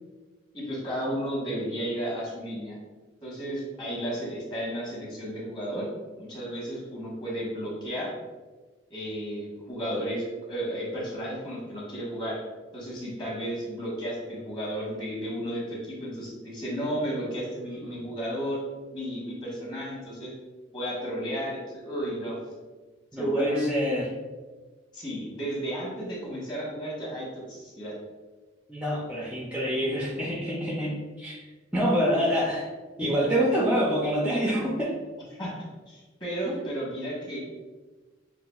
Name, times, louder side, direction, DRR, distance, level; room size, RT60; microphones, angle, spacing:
voice 1, 0.5-2.8 3.2-5.9 6.2-8.2 8.9-12.4 12.7-18.6 18.9-20.3 20.7-22.4 23.2-23.8 24.9-27.9 35.4-37.4, equal, 25° left, -5 dB, 1.1 m, -33 dB
voice 2, 23.1-24.1 28.7-31.4 31.7-32.7 33.0-35.0 36.5-36.7, equal, 5° right, -3 dB, 0.4 m, -26 dB
5.6 x 2.4 x 2.3 m, 1.3 s
head